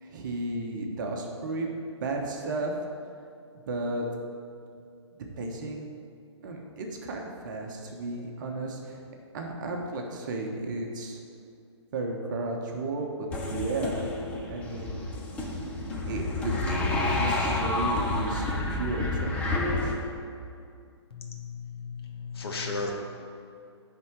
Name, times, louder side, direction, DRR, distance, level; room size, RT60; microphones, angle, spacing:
voice 1, 0.0-1.7 2.0-2.7 3.7-4.1 5.4-5.9 6.4-9.0 9.3-11.2 11.9-14.1 14.5-14.9 16.1-19.7, right 2 dB, 45° right, 1 dB, 1.0 m, -33 dB
sound 1, 13.3-19.9, left 2 dB, 10° left, 0.5 m, -29 dB
voice 2, 21.1-22.9, left 4 dB, 55° left, 1 dB, 1.3 m, -35 dB
10.5 x 3.8 x 4.6 m, 2.4 s
hypercardioid pair, 150°, 15 cm